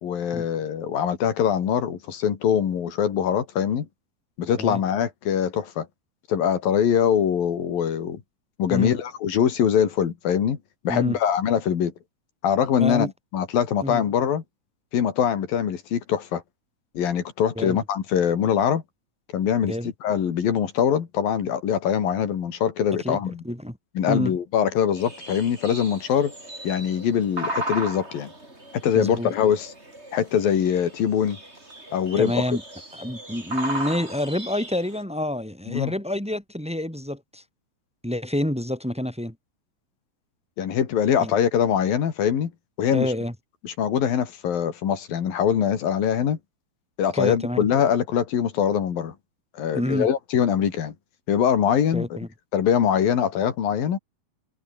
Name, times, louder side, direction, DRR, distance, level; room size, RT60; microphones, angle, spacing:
voice 1, 0.0-3.9 4.4-5.9 6.3-8.2 8.6-10.6 10.8-11.9 12.4-14.4 14.9-16.4 17.0-18.8 19.3-19.8 20.0-23.4 24.0-26.3 26.6-28.3 28.8-29.7 30.1-31.4 31.9-32.4 35.7-35.9 40.6-42.5 42.8-43.1 43.6-46.4 47.0-49.1 49.6-50.9 51.3-52.2 52.5-54.0, left 8 dB, 90° left, 4.4 m, -23 dB
voice 2, 12.8-13.1 13.8-14.0 17.6-17.8 19.6-19.9 23.0-23.2 23.4-23.8 24.1-24.3 28.9-29.3 32.2-32.6 32.9-37.4 38.0-39.3 41.2-41.3 42.9-43.3 47.1-47.6 49.7-50.1 51.9-52.3, left 1 dB, ahead, 4.5 m, -28 dB
sound 1, 25.0-35.0, right 1 dB, 15° right, 6.5 m, -36 dB
omnidirectional pair, 4.0 m